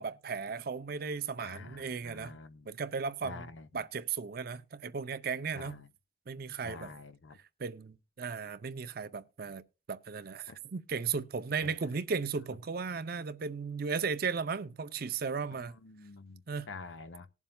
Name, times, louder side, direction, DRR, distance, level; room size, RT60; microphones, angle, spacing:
voice 1, 0.0-2.4 2.7-3.5 3.7-5.8 6.3-6.9 7.6-9.6 9.9-15.7 16.5-16.7, right 5 dB, 55° right, 0.5 m, -36 dB
voice 2, 1.4-2.7 3.2-3.9 5.5-5.9 6.6-7.4 10.5-10.6 11.6-11.7 15.5-17.3, left 3 dB, 80° left, 0.8 m, -48 dB
19.0 x 7.2 x 2.3 m
head